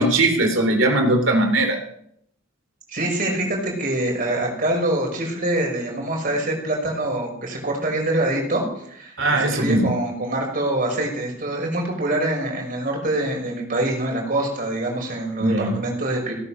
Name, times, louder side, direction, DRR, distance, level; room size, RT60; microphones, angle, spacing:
voice 1, 0.0-1.8 9.2-9.9 15.4-15.8, right 1 dB, 65° right, 3 dB, 3.2 m, -19 dB
voice 2, 2.9-16.3, right 1 dB, 45° right, 0 dB, 5.8 m, -25 dB
17.5 x 9.9 x 6.5 m, 0.70 s
head